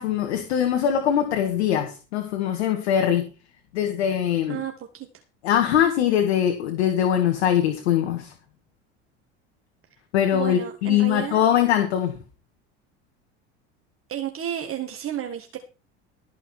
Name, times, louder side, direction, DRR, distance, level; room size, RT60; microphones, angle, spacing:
voice 1, 0.0-3.3 3.7-4.6 5.4-8.3 10.1-12.1, left 10 dB, 85° left, 6 dB, 2.0 m, -22 dB
voice 2, 4.5-5.1 10.3-11.5 14.1-15.6, right 10 dB, 40° right, 4 dB, 1.8 m, -32 dB
13.5 x 6.4 x 6.2 m, 0.33 s
hypercardioid pair, 85°, 33 cm